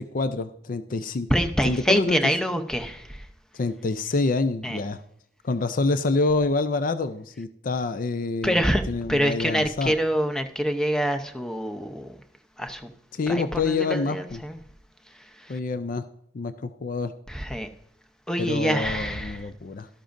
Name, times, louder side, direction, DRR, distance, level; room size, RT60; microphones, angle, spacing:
voice 1, 0.0-1.3 1.6-2.2 3.5-5.0 5.4-8.6 8.9-9.9 13.1-14.4 15.5-16.1 16.3-17.1 18.4-19.9, left 3 dB, 45° left, 12 dB, 0.4 m, -27 dB
voice 2, 1.3-3.3 4.6-4.8 8.4-8.8 9.1-12.1 12.6-12.9 13.3-14.6 15.4-15.6 17.3-17.7 18.3-19.5, equal, 5° left, 7 dB, 0.7 m, -26 dB
13.0 x 12.0 x 2.6 m, 0.69 s
head